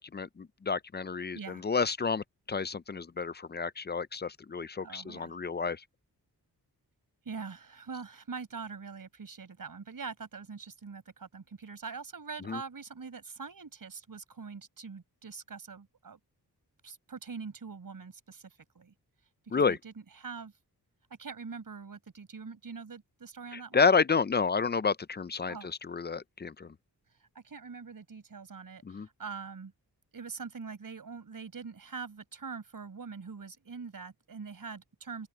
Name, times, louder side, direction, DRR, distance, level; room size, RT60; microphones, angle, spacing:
voice 1, 0.0-5.8 12.5-12.6 19.5-19.8 23.5-26.7 28.8-29.1, left 5 dB, 30° left, 0.4 m, -30 dB
voice 2, 4.8-5.4 7.3-16.2 16.8-18.9 19.5-20.5 21.2-23.9 25.5-25.7 27.4-29.7 30.1-35.3, right 5 dB, 60° right, 5.3 m, -43 dB
open air
wide cardioid pair, 145°, 39 cm